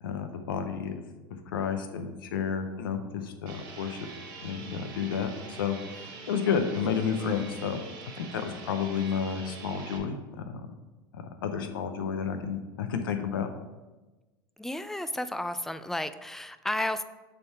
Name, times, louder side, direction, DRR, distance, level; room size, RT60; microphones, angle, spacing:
voice 1, 0.0-1.0 1.5-4.1 4.4-7.8 8.2-10.7 11.1-13.5, left 6 dB, 85° left, 7 dB, 0.7 m, -31 dB
sound 1, 3.5-10.0, right 4 dB, 65° right, 1.6 m, -44 dB
voice 2, 14.6-17.0, left 1 dB, 5° left, 12 dB, 0.3 m, -32 dB
6.8 x 3.5 x 4.7 m, 1.2 s
hypercardioid pair, 95°, 11 cm